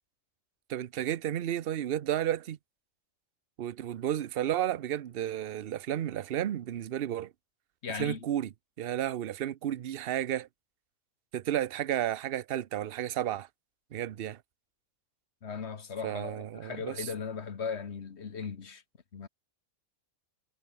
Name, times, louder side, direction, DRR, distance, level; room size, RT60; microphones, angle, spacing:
voice 1, 0.7-2.6 3.6-7.3 8.0-8.5 8.8-10.5 11.3-13.5 13.9-14.4 16.0-17.1, right 11 dB, 55° right, 0.8 m, -32 dB
voice 2, 7.8-8.3 15.4-18.8 19.1-19.3, left 6 dB, 55° left, 1.6 m, -38 dB
omnidirectional pair, 1.4 m